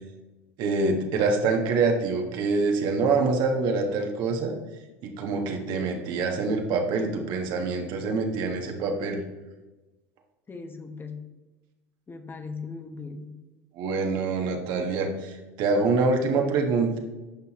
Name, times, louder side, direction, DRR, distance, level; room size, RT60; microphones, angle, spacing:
voice 1, 0.6-4.5 5.0-9.2 13.7-17.0, right 4 dB, 60° right, 3 dB, 1.4 m, -25 dB
voice 2, 10.5-11.3 12.1-13.4, left 4 dB, 25° left, 6 dB, 1.1 m, -38 dB
10.5 x 5.6 x 3.0 m, 1.1 s
hypercardioid pair, 80°, 9 cm